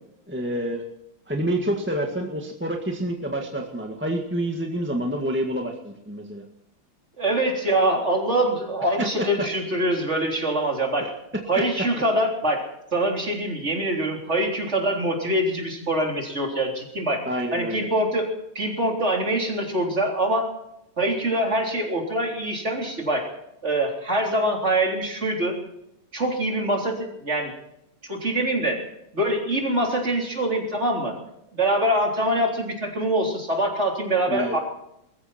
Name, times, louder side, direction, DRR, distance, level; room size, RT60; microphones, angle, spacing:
voice 1, 0.3-0.8 1.3-6.4 9.0-9.5 11.0-11.1 11.5-11.6 17.2-17.9 34.3-34.6, right 1 dB, 5° right, 1 dB, 1.5 m, -28 dB
voice 2, 7.2-11.1 11.5-12.6 12.9-17.2 17.5-18.3 18.5-20.5 21.0-23.2 23.6-25.5 26.1-27.5 28.1-28.8 29.1-31.2 31.5-34.6, right 1 dB, 30° right, 0 dB, 4.0 m, -24 dB
21.5 x 14.5 x 4.4 m, 0.79 s
omnidirectional pair, 2.4 m